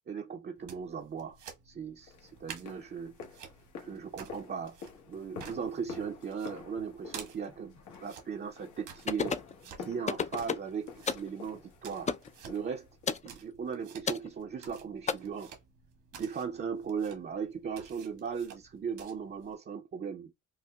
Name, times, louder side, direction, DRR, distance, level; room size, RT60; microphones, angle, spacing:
voice 1, 0.1-1.4 1.6-3.1 3.8-4.8 5.1-9.4 9.8-12.1 12.5-12.9 13.2-15.5 16.1-20.3, right 6 dB, 35° right, 0.5 m, -38 dB
sound 1, 0.6-19.5, right 6 dB, 75° right, 1.4 m, -52 dB
sound 2, 2.1-13.2, left 5 dB, 80° left, 1.2 m, -49 dB
sound 3, 9.1-9.5 10.1-10.7 11.1-11.3 12.1-12.3 13.1-13.3 14.1-14.3 15.1-15.2, left 5 dB, 25° left, 0.4 m, -31 dB
5.6 x 2.0 x 2.2 m
cardioid pair, 90°, 30 cm